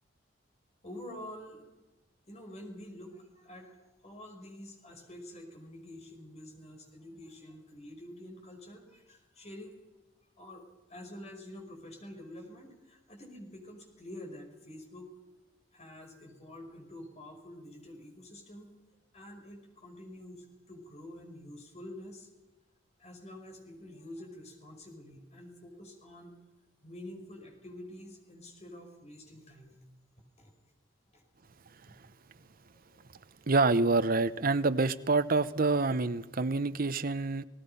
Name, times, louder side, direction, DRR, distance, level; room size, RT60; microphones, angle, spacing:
voice 1, 0.8-1.9 2.3-3.8 4.0-9.7 10.4-10.6 10.9-15.1 15.7-18.7 19.1-22.3 23.0-26.3 26.8-29.8 30.4-30.5 31.1-31.2 32.7-33.0, left 1 dB, 35° left, 3 dB, 5.4 m, -48 dB
voice 2, 33.5-37.4, right 3 dB, 50° right, 12 dB, 0.9 m, -27 dB
30.0 x 18.5 x 5.6 m, 1.1 s
head